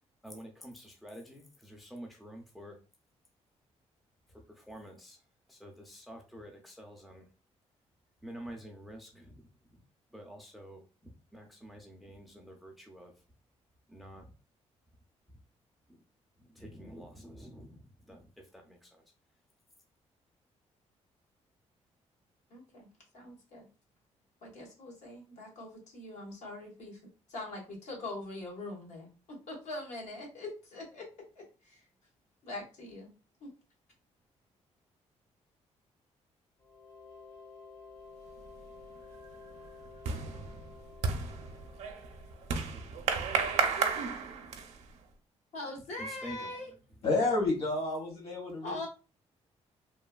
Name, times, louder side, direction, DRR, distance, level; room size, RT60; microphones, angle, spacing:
voice 1, 0.2-2.8 4.3-5.2 5.5-7.3 8.2-9.4 9.7-9.8 10.1-13.1 13.9-14.3 15.9-16.0 16.4-19.0 46.0-46.5, equal, ahead, 2 dB, 0.4 m, -48 dB
voice 2, 22.5-22.9 23.1-23.7 24.4-27.0 27.3-31.0 31.3-31.8 32.4-33.1 33.4-33.5 45.5-46.7 48.6-48.9, left 2 dB, 80° left, -2 dB, 1.3 m, -42 dB
sound 1, 36.6-43.2, left 4 dB, 35° left, 0.7 m, -53 dB
sound 2, 38.4-38.8 39.1-44.9, right 5 dB, 70° right, 0.5 m, -33 dB
voice 3, 47.0-48.9, left 2 dB, 60° left, -1 dB, 1.5 m, -30 dB
3.0 x 2.2 x 2.3 m, 0.33 s
cardioid pair, 150°, 12 cm